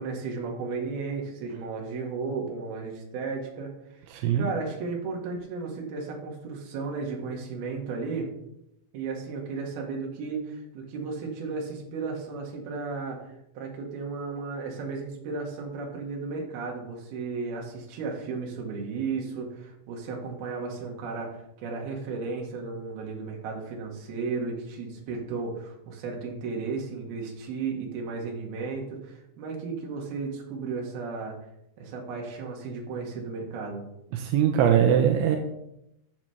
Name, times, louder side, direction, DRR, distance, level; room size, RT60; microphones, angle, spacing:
voice 1, 0.0-8.3 8.9-13.2 13.5-31.4 31.8-33.8, right 4 dB, 60° right, 0 dB, 3.3 m, -34 dB
voice 2, 4.1-4.5 34.1-35.4, right 9 dB, 85° right, 4 dB, 2.8 m, -21 dB
13.5 x 7.4 x 3.3 m, 0.83 s
omnidirectional pair, 5.9 m